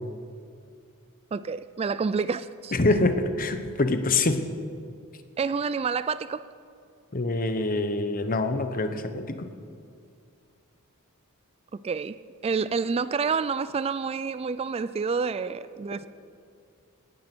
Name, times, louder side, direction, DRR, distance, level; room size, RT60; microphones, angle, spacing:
voice 1, 1.3-2.7 5.4-6.4 11.7-12.2 12.4-16.1, right 5 dB, 25° right, 0.3 m, -28 dB
voice 2, 2.7-4.4 7.1-9.5, left 2 dB, 40° left, 1.0 m, -25 dB
18.0 x 11.0 x 6.1 m
head